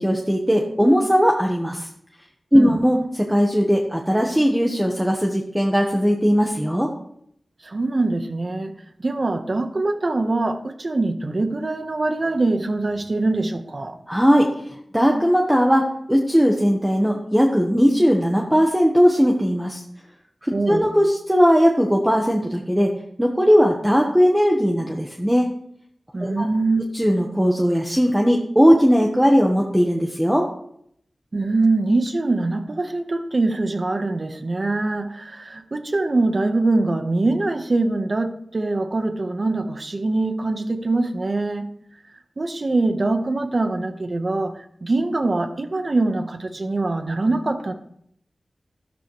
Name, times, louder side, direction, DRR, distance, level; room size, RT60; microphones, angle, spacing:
voice 1, 0.0-1.9 2.5-6.9 14.1-14.5 14.9-19.8 20.4-22.9 23.2-25.5 26.2-26.5 26.9-30.5, equal, 5° right, 0 dB, 1.4 m, -18 dB
voice 2, 7.6-8.7 9.0-14.0 20.5-20.9 26.1-26.8 31.3-41.7 42.4-47.7, right 2 dB, 45° right, 7 dB, 1.2 m, -23 dB
13.0 x 12.5 x 3.3 m, 0.71 s
wide cardioid pair, 75°, 0 cm